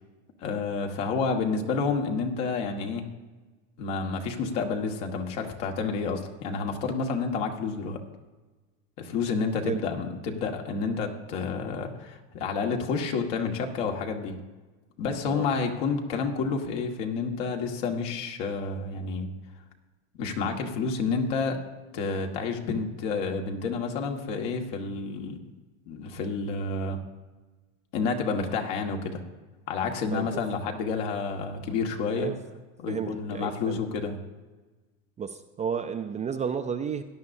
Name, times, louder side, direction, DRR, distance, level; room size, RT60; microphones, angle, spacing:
voice 1, 0.4-3.0 3.8-8.0 9.0-14.4 15.0-19.3 20.2-21.6 21.9-25.4 25.9-27.0 27.9-29.2 29.7-32.3 32.8-34.2, left 4 dB, 70° left, 3 dB, 1.8 m, -29 dB
voice 2, 32.9-33.8 35.2-37.0, right 7 dB, 20° right, 8 dB, 0.4 m, -32 dB
17.0 x 11.0 x 2.7 m, 1.3 s
supercardioid pair, 115°, 37 cm